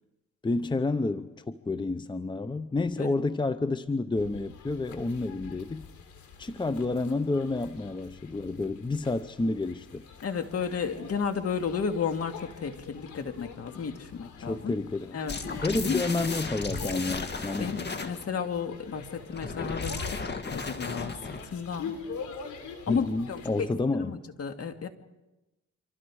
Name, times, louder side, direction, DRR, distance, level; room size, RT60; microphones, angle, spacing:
voice 1, 0.4-5.8 6.4-10.0 14.4-15.2 15.6-17.8 22.9-24.2, left 3 dB, 15° left, 12 dB, 0.8 m, -30 dB
sound 1, 4.2-23.6, left 6 dB, 75° left, 3.6 m, -45 dB
voice 2, 10.2-14.7 15.1-16.0 17.6-21.9 22.9-23.7 24.0-24.9, left 6 dB, 50° left, 6 dB, 2.2 m, -33 dB
sound 2, 15.3-18.2 19.3-21.5, left 4 dB, 35° left, 2.1 m, -35 dB
29.5 x 25.5 x 4.9 m, 1.0 s
cardioid pair, 90°, 30 cm